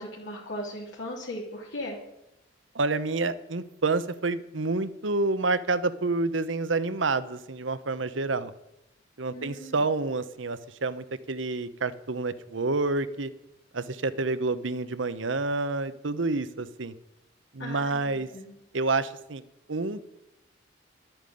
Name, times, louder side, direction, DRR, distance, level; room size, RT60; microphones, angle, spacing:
voice 1, 0.0-2.0 9.3-9.8 17.6-18.5, left 1 dB, 70° left, -5 dB, 3.2 m, -38 dB
voice 2, 2.7-8.5 9.2-13.3 13.7-16.9 17.5-18.3 18.7-19.4 19.7-20.1, right 3 dB, 75° right, 14 dB, 0.9 m, -28 dB
12.0 x 9.0 x 9.2 m, 0.85 s
head